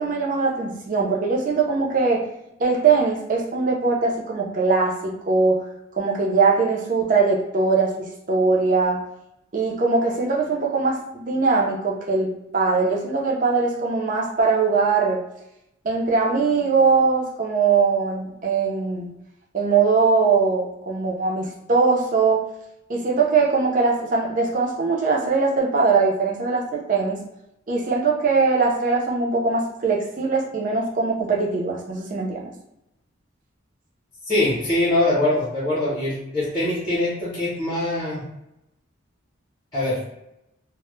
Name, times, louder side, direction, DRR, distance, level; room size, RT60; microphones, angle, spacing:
voice 1, 0.0-2.2 2.6-5.6 6.0-9.0 9.5-15.2 15.8-19.1 19.5-22.4 22.9-27.2 27.7-32.5, right 4 dB, 40° right, 0 dB, 0.4 m, -21 dB
voice 2, 34.3-38.2 39.7-40.0, left 1 dB, 20° left, -8 dB, 0.7 m, -23 dB
2.1 x 2.0 x 3.0 m, 0.86 s
head